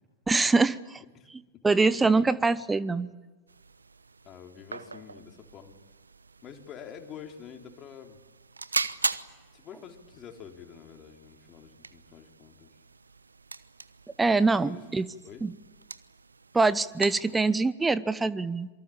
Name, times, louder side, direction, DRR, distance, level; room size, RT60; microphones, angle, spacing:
voice 1, 0.3-1.0 1.6-3.1 14.2-15.1 15.4-15.5 16.5-18.7, right 3 dB, 10° right, 18 dB, 0.9 m, -24 dB
sound 1, 3.5-17.6, right 4 dB, 75° right, 1.0 m, -40 dB
voice 2, 4.2-5.8 6.4-8.2 9.5-12.7 14.4-14.8 15.2-15.5, left 8 dB, 30° left, 4 dB, 3.5 m, -47 dB
27.0 x 24.0 x 8.6 m, 1.2 s
figure-of-eight pair, 90°, 0 cm